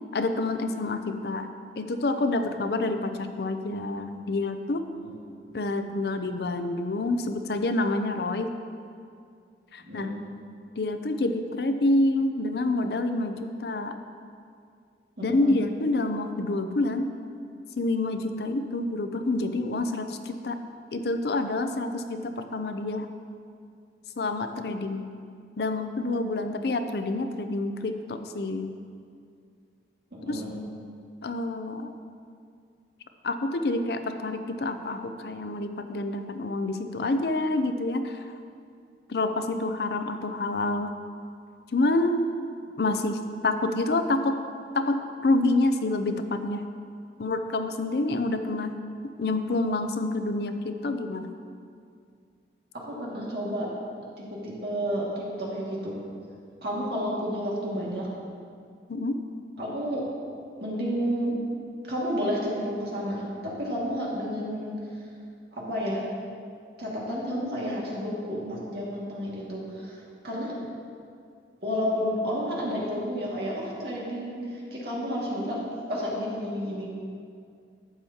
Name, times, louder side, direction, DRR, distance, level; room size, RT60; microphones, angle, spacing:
voice 1, 0.1-1.5 1.8-4.8 5.5-8.5 9.7-10.1 10.8-13.9 15.2-17.1 17.8-20.6 20.9-23.1 24.2-25.0 25.6-28.7 30.3-30.4 31.2-31.9 33.2-38.3 39.1-40.9 41.7-42.3 42.8-44.4 44.7-46.6 47.2-48.7 49.0-51.3 58.9-59.2, left 2 dB, 65° left, 7 dB, 0.5 m, -27 dB
voice 2, 15.2-15.6 30.1-30.6 52.7-53.7 54.2-55.9 56.6-58.1 59.6-60.0 60.6-61.3 61.9-64.8 65.5-66.0 66.8-70.5 71.6-75.6 75.9-76.9, equal, 65° right, -5 dB, 2.0 m, -31 dB
11.5 x 8.0 x 2.8 m, 2.3 s
head